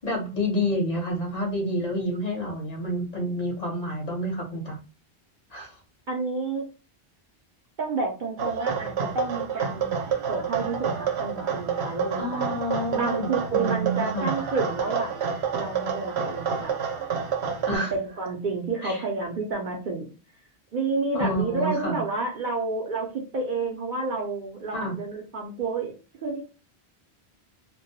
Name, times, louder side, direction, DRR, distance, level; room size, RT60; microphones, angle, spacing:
voice 1, 0.0-4.8 5.5-5.7 12.2-14.3 17.7-17.9 18.8-19.0 21.1-22.0 24.7-25.0, equal, 45° left, 0 dB, 0.7 m, -29 dB
voice 2, 6.1-6.7 7.8-12.4 12.9-15.2 15.5-16.7 17.7-20.1 20.7-23.1 23.3-25.9 26.2-26.4, right 3 dB, 60° right, 1 dB, 0.6 m, -30 dB
sound 1, 8.4-17.8, right 6 dB, 85° right, 0.9 m, -29 dB
2.2 x 2.1 x 2.6 m, 0.32 s
omnidirectional pair, 1.1 m